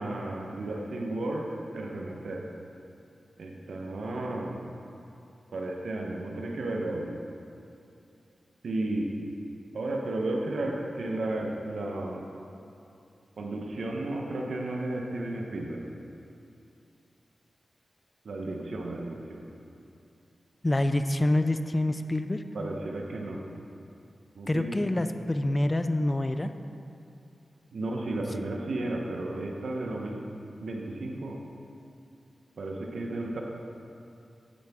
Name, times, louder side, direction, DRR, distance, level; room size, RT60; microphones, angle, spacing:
voice 1, 0.0-2.5 3.4-4.6 5.5-7.1 8.6-9.1 9.7-12.2 13.4-15.8 18.2-19.5 22.5-23.4 24.4-24.8 27.7-30.2 30.6-31.4 32.6-33.4, right 2 dB, 80° right, 0 dB, 0.9 m, -33 dB
voice 2, 20.6-22.4 24.5-26.5, left 1 dB, 25° left, 9 dB, 0.4 m, -26 dB
10.0 x 7.8 x 3.6 m, 2.6 s
cardioid pair, 60°, 0 cm